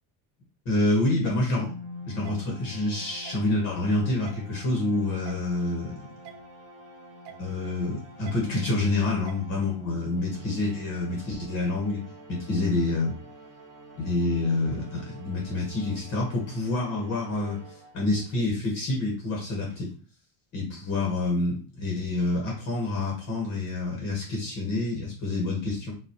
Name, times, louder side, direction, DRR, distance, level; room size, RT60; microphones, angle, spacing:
voice 1, 0.6-1.7 2.1-5.9 7.3-12.0 12.3-13.2 14.0-17.6 17.9-19.9 20.5-25.9, left 2 dB, 35° left, -2 dB, 1.7 m, -27 dB
sound 1, 1.2-1.4 2.2-2.4 3.2-3.4 4.2-4.4 5.2-5.4 6.2-6.4 7.2-7.4 8.2-8.4 9.3-9.4, right 13 dB, 75° right, 0.8 m, -45 dB
sound 2, 1.6-18.3, equal, 30° right, 2.6 m, -46 dB
5.5 x 3.0 x 3.1 m, 0.38 s
cardioid pair, 170°, 45 cm